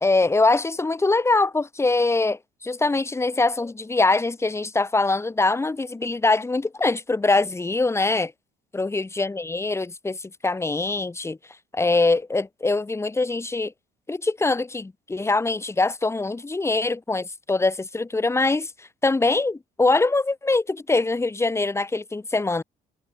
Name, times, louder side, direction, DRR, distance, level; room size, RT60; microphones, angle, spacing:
voice 1, 0.0-8.3 8.7-11.4 11.7-13.7 14.1-18.7 19.0-22.6, left 3 dB, 15° left, 2.5 m, -23 dB
cardioid pair, 110°, 17 cm